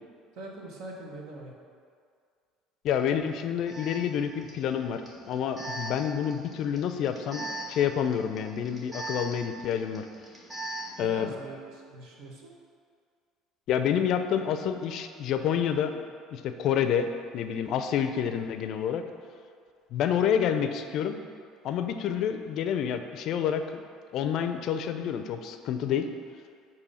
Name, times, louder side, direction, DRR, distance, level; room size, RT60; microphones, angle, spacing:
voice 1, 0.3-1.5 11.0-12.5, right 2 dB, 75° right, -1 dB, 1.1 m, -42 dB
voice 2, 2.8-10.1 11.0-11.3 13.7-16.0 16.3-19.0 19.9-21.2 21.6-23.8 24.1-26.1, left 8 dB, 60° left, 8 dB, 0.4 m, -28 dB
Alarm, 2.9-3.0 3.7-11.0, right 2 dB, 30° right, 1.4 m, -41 dB
6.8 x 2.7 x 5.4 m, 2.2 s
supercardioid pair, 100°, 0 cm